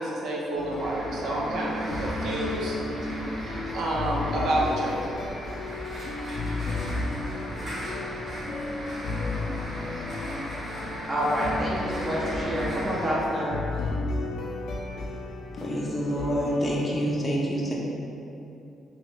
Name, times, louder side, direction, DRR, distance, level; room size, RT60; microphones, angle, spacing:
voice 1, 0.0-2.8 3.7-5.0 7.5-7.6, right 1 dB, 70° right, -3 dB, 0.5 m, -28 dB
sound 1, 0.5-16.9, left 2 dB, 70° left, 0.4 m, -34 dB
sound 2, 0.8-13.1, equal, 50° right, 1.3 m, -37 dB
voice 2, 11.1-13.6, equal, 30° right, -6 dB, 0.9 m, -28 dB
voice 3, 15.6-17.7, equal, 20° left, -4 dB, 0.6 m, -27 dB
2.9 x 2.6 x 3.1 m, 2.7 s
cardioid pair, 90°, 0 cm